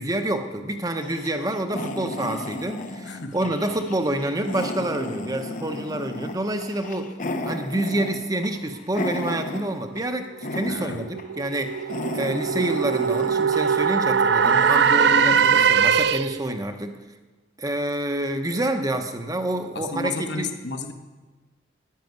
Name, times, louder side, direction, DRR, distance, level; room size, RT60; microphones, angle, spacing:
voice 1, 0.0-7.1 7.4-16.9 17.6-20.5, right 1 dB, 20° right, 6 dB, 0.9 m, -28 dB
sound 1, 1.0-10.1 10.4-11.2 11.5-15.7, left 1 dB, 40° left, 0.8 m, -34 dB
voice 2, 3.1-3.5 10.6-11.1 15.2-15.4 19.7-20.9, left 3 dB, 60° left, 6 dB, 1.3 m, -32 dB
sound 2, 10.3-16.5, right 6 dB, 60° right, 0.4 m, -21 dB
10.5 x 10.5 x 9.3 m, 1.3 s
head